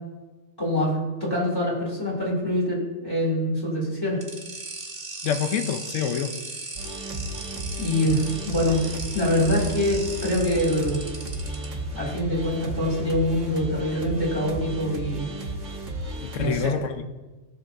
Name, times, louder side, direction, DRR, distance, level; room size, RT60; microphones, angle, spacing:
voice 1, 0.6-4.2 7.8-11.0 11.9-15.3 16.4-16.7, left 1 dB, 20° left, -4 dB, 3.0 m, -25 dB
sound 1, 4.2-11.6, right 3 dB, 30° right, 2.0 m, -37 dB
voice 2, 5.2-6.3 16.2-17.0, left 8 dB, 80° left, 8 dB, 1.1 m, -27 dB
sound 2, 6.8-16.5, right 1 dB, 75° right, 1.6 m, -34 dB
18.0 x 6.7 x 2.7 m, 1.2 s
omnidirectional pair, 1.3 m